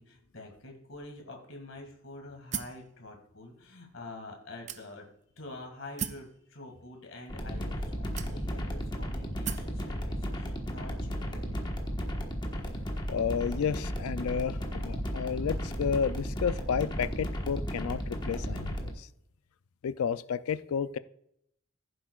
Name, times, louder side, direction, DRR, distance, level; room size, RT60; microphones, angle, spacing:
voice 1, 0.0-5.1 5.4-11.6, left 2 dB, 65° left, 2 dB, 2.0 m, -46 dB
sound 1, 2.5-2.9 3.6-3.7 4.7-5.2 6.0-6.3 7.3-7.4 8.2-8.7 9.4-9.8, right 8 dB, 30° right, 0.4 m, -37 dB
sound 2, 7.3-18.9, equal, 20° left, 1.2 m, -34 dB
voice 2, 13.1-19.1 19.8-21.0, left 7 dB, 80° left, 14 dB, 0.4 m, -31 dB
15.0 x 7.6 x 2.4 m, 0.72 s
head